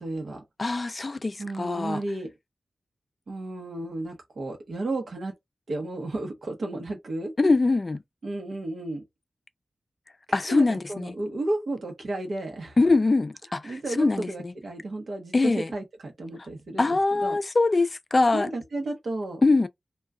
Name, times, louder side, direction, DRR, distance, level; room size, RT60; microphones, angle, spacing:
voice 1, 0.0-0.4 1.4-2.3 3.3-5.3 5.7-7.3 8.2-9.0 10.5-12.8 13.6-17.4 18.3-19.4, right 2 dB, 70° right, 0.8 m, -33 dB
voice 2, 0.6-2.0 7.4-8.0 10.3-11.2 12.8-14.5 15.3-15.7 16.8-18.5 19.4-19.7, left 3 dB, 35° left, 0.3 m, -23 dB
2.2 x 2.2 x 3.5 m
wide cardioid pair, 95°, 0 cm